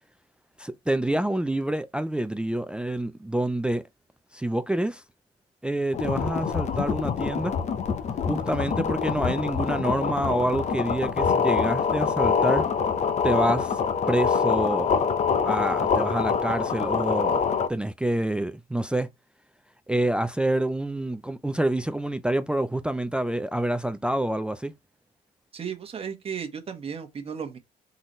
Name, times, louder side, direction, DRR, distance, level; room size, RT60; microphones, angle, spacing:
voice 1, 0.6-3.8 4.3-5.0 5.6-7.5 8.3-12.6 13.2-13.8 14.1-15.0 15.4-17.4 17.7-19.1 19.9-24.7, right 1 dB, 5° right, 0.4 m, -27 dB
sound 1, 5.9-17.7, left 6 dB, 40° left, 0.8 m, -25 dB
voice 2, 25.5-27.6, right 7 dB, 35° right, 1.3 m, -34 dB
4.0 x 3.9 x 3.1 m
cardioid pair, 110°, 17 cm